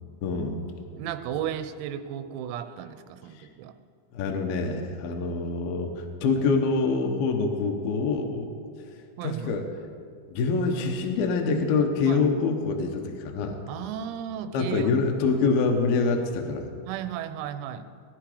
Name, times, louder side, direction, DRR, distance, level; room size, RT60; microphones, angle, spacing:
voice 1, 0.2-0.6 3.3-3.5 4.1-8.5 9.2-9.7 10.3-13.6 14.5-16.7, left 4 dB, 85° left, 3 dB, 2.1 m, -25 dB
voice 2, 0.9-3.7 9.2-9.5 12.1-12.2 13.7-14.9 16.9-17.8, right 10 dB, 90° right, 10 dB, 3.5 m, -34 dB
19.5 x 12.0 x 5.0 m, 2.2 s
omnidirectional pair, 6.0 m